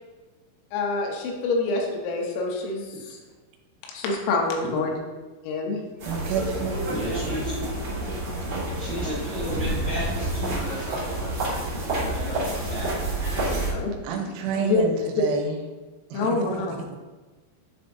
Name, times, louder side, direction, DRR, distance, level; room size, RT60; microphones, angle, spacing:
voice 1, 0.7-3.2 3.9-4.9 5.4-5.8 13.3-13.9 14.6-14.8 15.2-15.3 16.1-16.7, left 3 dB, 80° left, 0 dB, 3.5 m, -26 dB
sound 1, 6.0-13.7, right 1 dB, 50° right, 2.1 m, -28 dB
voice 2, 6.1-6.8 8.5-8.7 14.0-14.9 15.2-15.4 16.1-16.2 16.7-17.0, right 6 dB, 90° right, 3 dB, 3.5 m, -29 dB
voice 3, 6.9-7.7 8.8-13.0 14.5-14.7, equal, 75° right, -10 dB, 1.6 m, -35 dB
10.5 x 3.8 x 2.6 m, 1.2 s
omnidirectional pair, 6.0 m